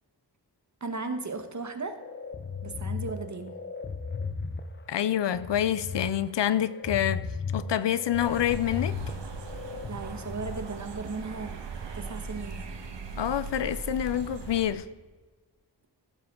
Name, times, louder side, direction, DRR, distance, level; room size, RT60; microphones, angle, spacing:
voice 1, 0.8-2.0 2.6-3.5 9.6-11.5 11.9-12.6, right 4 dB, 40° right, 1.2 m, -36 dB
sound 1, 2.0-10.6, left 5 dB, 25° left, 0.6 m, -36 dB
voice 2, 4.9-9.0 13.2-14.8, left 10 dB, 75° left, 0.6 m, -27 dB
sound 2, 8.1-14.7, right 4 dB, 80° right, 1.3 m, -39 dB
15.5 x 7.4 x 3.7 m
wide cardioid pair, 100°, 42 cm